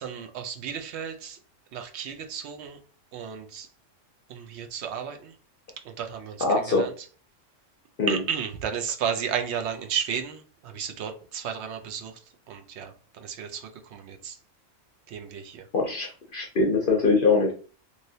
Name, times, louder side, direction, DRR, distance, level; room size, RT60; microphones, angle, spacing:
voice 1, 0.0-1.4 1.7-2.8 3.1-3.7 4.3-5.2 6.0-6.4 6.8-6.9 8.1-10.4 10.7-12.1 12.5-12.9 13.2-13.6 13.9-14.3 15.1-15.6, right 8 dB, 65° right, 0.8 m, -32 dB
voice 2, 6.4-6.9 8.0-8.2 15.7-17.5, left 3 dB, 55° left, 0.6 m, -23 dB
3.1 x 2.7 x 2.7 m
omnidirectional pair, 1.4 m